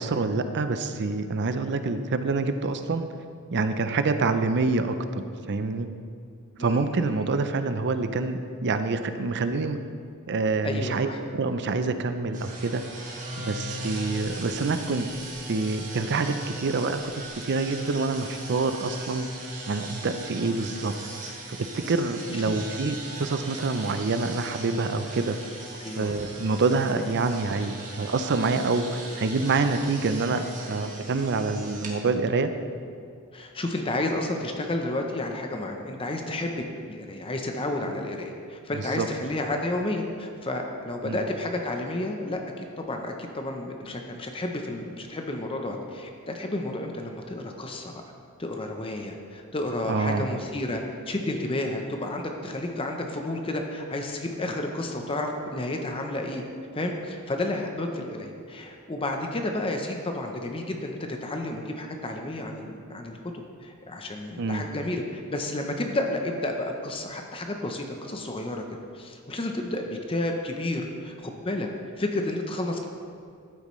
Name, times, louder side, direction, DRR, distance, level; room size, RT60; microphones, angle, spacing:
voice 1, 0.0-3.1 3.5-5.9 6.6-9.8 10.3-12.8 13.4-15.1 15.5-17.0 17.4-19.3 19.7-20.9 21.5-25.4 26.0-32.5 38.8-39.1 41.0-41.2 49.9-50.3 64.4-64.7, right 3 dB, 50° right, 9 dB, 0.5 m, -26 dB
voice 2, 6.6-7.4 10.6-11.2 22.5-22.6 25.8-26.2 33.3-36.6 36.9-47.9 48.4-56.4 56.7-63.2 63.6-68.6 68.9-71.7 72.0-72.9, left 1 dB, 25° left, 3 dB, 0.7 m, -31 dB
sound 1, 12.3-31.9, right 2 dB, 35° right, 1.6 m, -39 dB
12.0 x 8.7 x 3.1 m, 2.3 s
head